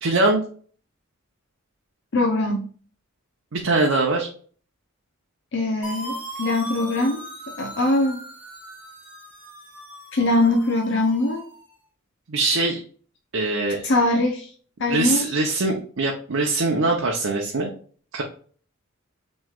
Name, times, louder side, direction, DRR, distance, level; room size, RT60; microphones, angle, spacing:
voice 1, 0.0-0.4 3.5-4.3 12.3-12.8 13.3-13.9 14.9-17.7 18.1-18.2, right 2 dB, 75° right, 0 dB, 0.8 m, -22 dB
voice 2, 2.1-2.7 5.5-7.2 7.6-8.2 10.1-11.4 13.8-14.5 14.8-15.3, left 2 dB, 60° left, 2 dB, 0.7 m, -22 dB
sound 1, 5.8-11.6, right 1 dB, 10° right, 1.5 m, -38 dB
6.1 x 3.2 x 2.4 m, 0.43 s
head